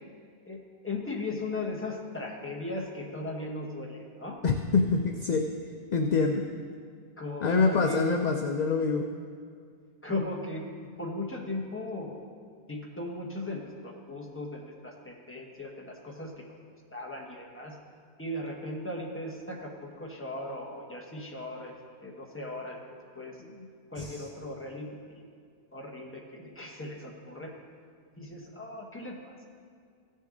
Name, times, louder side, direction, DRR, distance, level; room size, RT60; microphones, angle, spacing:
voice 1, 0.5-4.4 7.2-8.1 10.0-10.7 11.0-12.2 12.7-16.6 16.9-17.8 18.2-21.7 22.0-22.8 23.1-23.4 23.9-25.2 25.7-27.5 28.2-29.5, left 2 dB, 10° left, 0 dB, 1.1 m, -37 dB
voice 2, 4.4-5.5 5.9-6.5 7.4-9.1 23.5-23.6 24.0-24.2, left 4 dB, 50° left, 4 dB, 0.5 m, -26 dB
16.0 x 6.5 x 3.8 m, 2.2 s
omnidirectional pair, 1.2 m